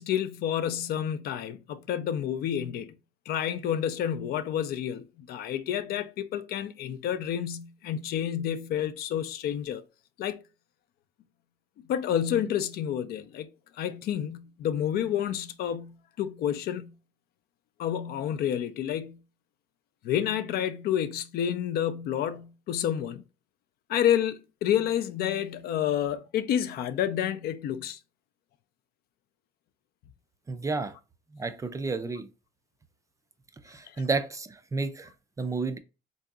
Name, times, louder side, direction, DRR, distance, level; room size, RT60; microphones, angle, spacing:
voice 1, 0.0-2.9 3.3-9.8 10.2-10.4 11.9-13.5 13.8-16.9 17.8-19.2 20.0-23.2 23.9-28.0, left 10 dB, 65° left, 0.4 m, -29 dB
voice 2, 30.5-30.9 31.3-32.3 33.6-35.1 35.4-35.8, right 3 dB, 20° right, 0.3 m, -31 dB
3.8 x 2.7 x 2.3 m
cardioid pair, 110°, 17 cm